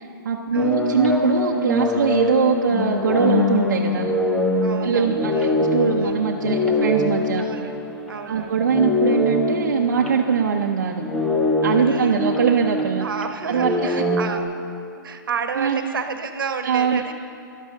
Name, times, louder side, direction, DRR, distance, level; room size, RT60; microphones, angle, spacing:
voice 1, 0.0-4.1 4.8-7.4 8.3-11.0 11.6-13.1 13.5-13.9 15.6-15.9 16.6-17.0, right 6 dB, 55° right, 0 dB, 0.8 m, -22 dB
sound 1, 0.5-8.3 8.6-14.4, left 2 dB, 5° left, 0.4 m, -23 dB
voice 2, 4.6-5.5 6.0-6.1 7.4-7.7 8.1-8.6 11.8-12.2 13.0-14.4 15.0-17.1, right 5 dB, 70° right, 7 dB, 1.2 m, -31 dB
13.0 x 11.0 x 6.4 m, 2.6 s
hypercardioid pair, 170°, 12 cm